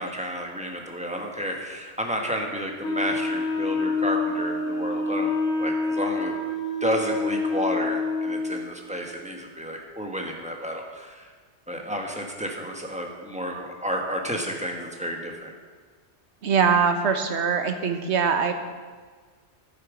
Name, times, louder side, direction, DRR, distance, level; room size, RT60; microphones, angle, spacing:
voice 1, 0.0-5.3 5.6-6.3 6.8-11.3 11.7-15.5, equal, 5° right, 1 dB, 1.3 m, -31 dB
Wind instrument woodwind instrument, 2.8-8.7, left 3 dB, 75° left, 2.3 m, -27 dB
voice 2, 16.4-18.5, right 6 dB, 70° right, 7 dB, 1.2 m, -22 dB
11.0 x 9.3 x 5.0 m, 1.5 s
omnidirectional pair, 1.2 m